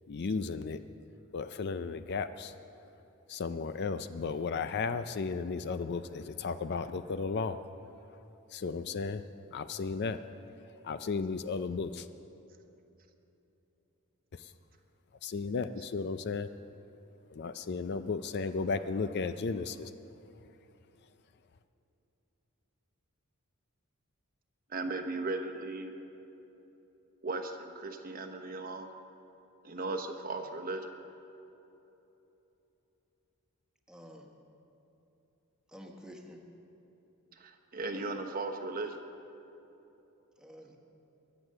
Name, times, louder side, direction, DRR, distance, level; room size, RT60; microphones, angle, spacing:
voice 1, 0.1-0.8 1.3-2.5 3.3-7.6 8.5-9.2 9.5-10.2 10.8-12.1 15.2-16.5 17.3-19.9, left 4 dB, 50° left, 11 dB, 0.4 m, -34 dB
voice 2, 24.7-25.9 27.2-28.9 29.6-30.9 37.3-39.0, right 3 dB, 40° right, 6 dB, 1.0 m, -37 dB
voice 3, 33.9-34.3 35.7-36.4 40.4-40.8, equal, 5° right, 1 dB, 1.3 m, -49 dB
23.0 x 8.0 x 6.6 m, 3.0 s
head